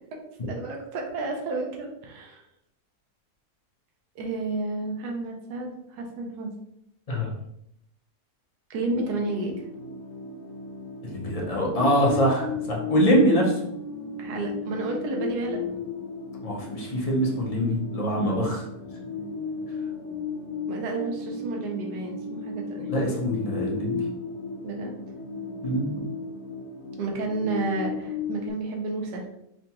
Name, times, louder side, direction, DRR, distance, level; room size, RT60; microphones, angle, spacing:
voice 1, 0.5-2.4 4.1-6.5 8.7-9.5 14.2-15.6 20.7-22.9 24.6-24.9 27.0-29.3, right 3 dB, 85° right, 1 dB, 1.3 m, -31 dB
sound 1, 8.9-28.5, left 4 dB, 65° left, 1.0 m, -35 dB
voice 2, 11.0-13.6 16.4-18.6 22.9-24.0 25.6-25.9, equal, 40° left, -2 dB, 0.5 m, -24 dB
4.9 x 2.3 x 2.9 m, 0.76 s
omnidirectional pair, 1.7 m